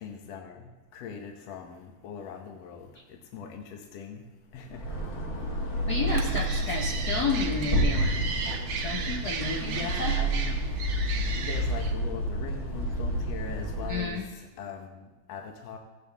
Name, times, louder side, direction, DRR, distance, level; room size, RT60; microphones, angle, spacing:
voice 1, 0.0-4.2 4.5-4.8 5.7-5.8 9.6-11.1 11.3-15.8, left 6 dB, 65° left, 3 dB, 2.0 m, -41 dB
sound 1, 4.6-14.2, right 1 dB, 35° left, 1.7 m, -30 dB
voice 2, 5.9-8.3 8.8-10.2 13.9-14.2, left 3 dB, 80° left, -2 dB, 0.8 m, -31 dB
sound 2, 6.1-11.9, right 5 dB, 75° right, 1.2 m, -35 dB
16.5 x 8.5 x 3.5 m, 1.2 s
omnidirectional pair, 3.4 m